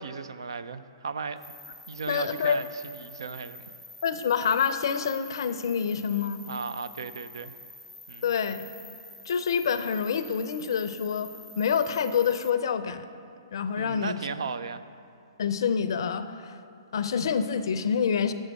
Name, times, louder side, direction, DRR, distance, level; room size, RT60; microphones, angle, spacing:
voice 1, 0.0-1.5 1.9-3.7 6.5-7.5 8.1-8.3 13.8-14.8, right 5 dB, 80° right, 12 dB, 0.4 m, -36 dB
sound 1, 1.4-12.5, left 2 dB, 5° left, 0.4 m, -47 dB
voice 2, 2.1-2.6 4.0-6.4 8.2-8.6 9.3-13.1 13.5-14.2 15.4-16.6 16.9-18.3, left 7 dB, 65° left, 11 dB, 0.5 m, -27 dB
7.3 x 6.3 x 6.3 m, 2.5 s
hypercardioid pair, 130°, 2 cm